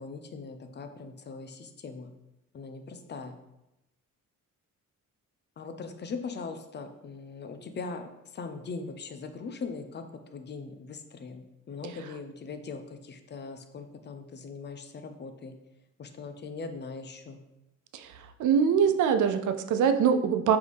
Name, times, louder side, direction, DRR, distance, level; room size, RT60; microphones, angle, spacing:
voice 1, 0.0-2.1 2.5-3.4 5.6-10.0 10.3-15.5 16.0-17.4, left 4 dB, 35° left, 7 dB, 0.4 m, -40 dB
voice 2, 18.4-20.6, right 7 dB, 65° right, 8 dB, 0.5 m, -23 dB
4.7 x 2.6 x 3.4 m, 0.93 s
cardioid pair, 95°, 32 cm